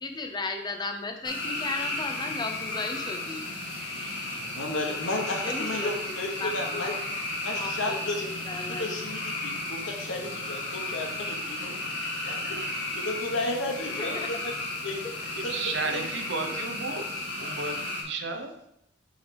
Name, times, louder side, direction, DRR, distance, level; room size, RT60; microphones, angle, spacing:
voice 1, 0.0-3.4 5.4-5.9 6.4-7.0 7.5-9.0 14.0-14.3, left 3 dB, 25° left, 4 dB, 0.6 m, -35 dB
sound 1, 1.2-18.0, left 2 dB, 65° left, 1.5 m, -34 dB
voice 2, 4.3-7.0 7.4-8.3 8.8-14.5 14.8-15.0 15.3-15.7, left 2 dB, 85° left, 2 dB, 1.2 m, -33 dB
voice 3, 15.5-18.6, right 3 dB, 65° right, 5 dB, 0.8 m, -33 dB
6.3 x 3.3 x 5.3 m, 0.79 s
head